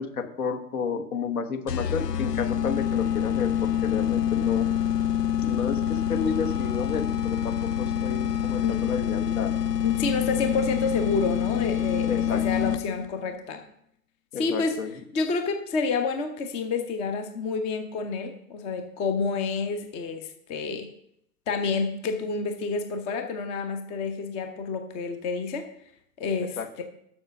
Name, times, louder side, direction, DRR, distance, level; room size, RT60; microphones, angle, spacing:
voice 1, 0.0-4.7 5.4-9.5 12.0-12.4 14.3-14.9 26.6-26.8, left 5 dB, 65° left, 6 dB, 1.2 m, -31 dB
sound 1, 1.7-13.1, left 10 dB, 90° left, 0.5 m, -26 dB
voice 2, 9.8-13.6 14.4-14.8 15.1-20.9 21.5-25.7 26.2-26.8, left 4 dB, 15° left, 6 dB, 0.5 m, -29 dB
7.1 x 5.5 x 6.4 m, 0.73 s
figure-of-eight pair, 100°, 47 cm